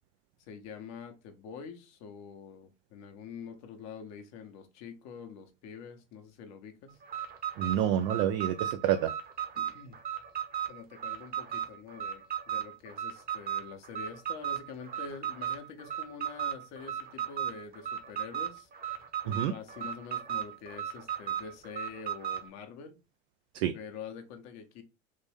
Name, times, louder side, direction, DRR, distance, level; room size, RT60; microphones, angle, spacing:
voice 1, 0.5-7.0 9.6-10.0 10.7-18.7 19.2-23.0 23.7-24.8, left 6 dB, 45° left, 1.0 m, -46 dB
Alarm, 7.0-22.5, right 10 dB, 25° right, 1.0 m, -36 dB
voice 2, 7.6-9.1 19.3-19.5 23.5-23.7, right 10 dB, 50° right, 0.5 m, -28 dB
3.6 x 2.6 x 3.4 m
hypercardioid pair, 100°, 39 cm